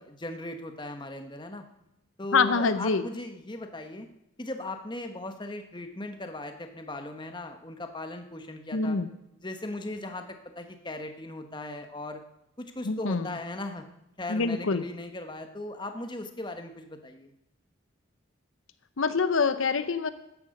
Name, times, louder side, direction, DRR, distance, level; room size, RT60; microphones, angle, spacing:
voice 1, 0.1-1.6 2.2-4.1 4.4-9.0 9.4-12.2 12.6-13.9 14.2-17.3, left 2 dB, 20° left, 6 dB, 1.1 m, -38 dB
voice 2, 2.3-3.0 8.7-9.1 12.8-13.4 14.3-14.8 19.0-20.1, left 4 dB, 75° left, 12 dB, 0.7 m, -25 dB
13.5 x 9.7 x 6.5 m, 0.85 s
head